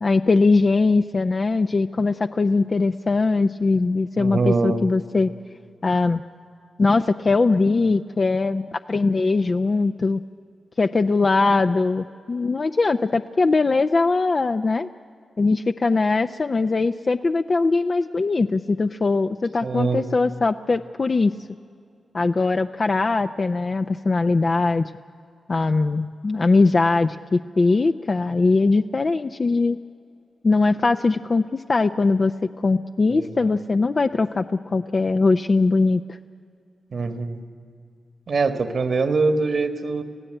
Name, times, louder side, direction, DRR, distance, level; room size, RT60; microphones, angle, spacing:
voice 1, 0.0-5.3 5.8-6.2 6.8-10.2 10.8-14.9 15.4-21.3 22.1-24.9 25.5-29.8 30.4-32.3 32.6-36.2, left 3 dB, 45° left, 7 dB, 0.5 m, -21 dB
voice 2, 4.2-4.8 19.6-20.0 33.1-33.3 36.9-37.4 38.3-40.0, right 4 dB, 65° right, 9 dB, 1.7 m, -23 dB
26.0 x 16.0 x 9.0 m, 2.4 s
cardioid pair, 55°, 0 cm